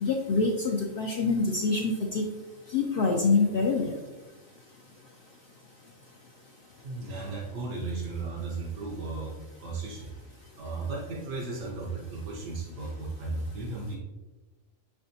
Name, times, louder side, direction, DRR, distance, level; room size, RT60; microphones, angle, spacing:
voice 1, 0.0-2.2 2.7-3.9, left 4 dB, 60° left, -1 dB, 0.6 m, -25 dB
voice 2, 6.8-10.2 10.6-14.0, right 3 dB, 70° right, -3 dB, 1.1 m, -35 dB
5.7 x 3.4 x 2.6 m, 1.2 s
omnidirectional pair, 1.4 m